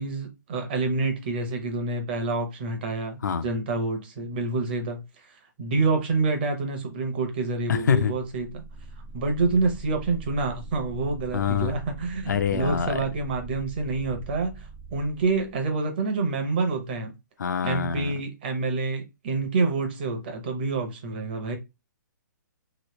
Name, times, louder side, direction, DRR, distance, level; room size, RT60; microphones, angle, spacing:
voice 1, 0.0-5.3 5.6-8.6 9.1-17.1 17.6-21.6, right 3 dB, 30° right, 0.8 m, -27 dB
voice 2, 7.7-8.1 11.3-11.8 12.3-13.0 17.4-18.1, left 7 dB, 65° left, 0.5 m, -25 dB
sound 1, 8.3-15.8, right 3 dB, 15° right, 0.3 m, -42 dB
3.0 x 2.7 x 3.0 m
hypercardioid pair, 170°, 10 cm